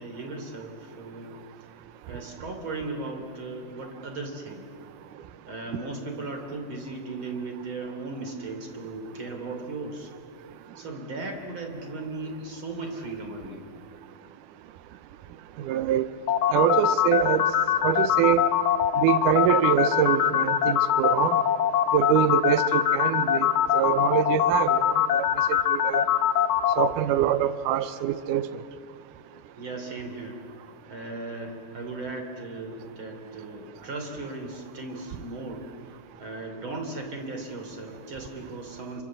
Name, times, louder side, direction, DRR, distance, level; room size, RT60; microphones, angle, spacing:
voice 1, 0.0-1.4 2.1-4.7 5.5-10.1 10.8-13.7 29.5-30.4 30.9-35.9 36.2-39.0, right 2 dB, 40° right, 4 dB, 3.9 m, -37 dB
voice 2, 15.6-16.1 16.5-17.5 17.8-18.4 19.0-21.4 21.9-25.3 25.7-26.0 26.8-28.5, right 11 dB, 85° right, 12 dB, 2.4 m, -24 dB
sound 1, 16.3-26.9, left 10 dB, 70° left, 2.2 m, -22 dB
29.0 x 24.0 x 7.6 m, 2.4 s
omnidirectional pair, 3.6 m